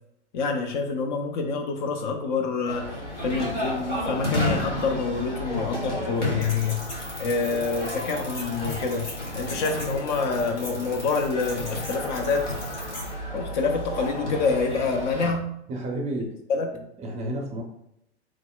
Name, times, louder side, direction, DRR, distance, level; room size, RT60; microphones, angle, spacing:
voice 1, 0.3-3.0 3.2-12.5 13.3-15.5 16.5-16.8, left 4 dB, 45° left, 4 dB, 0.5 m, -27 dB
sound 1, 2.7-15.3, left 1 dB, 90° left, 1.1 m, -32 dB
sound 2, 6.4-13.1, left 2 dB, 75° left, 1.4 m, -40 dB
voice 2, 15.7-16.3 16.7-17.6, right 1 dB, 20° right, 1 dB, 0.5 m, -31 dB
3.1 x 2.1 x 3.7 m, 0.78 s
figure-of-eight pair, 90°, 35 cm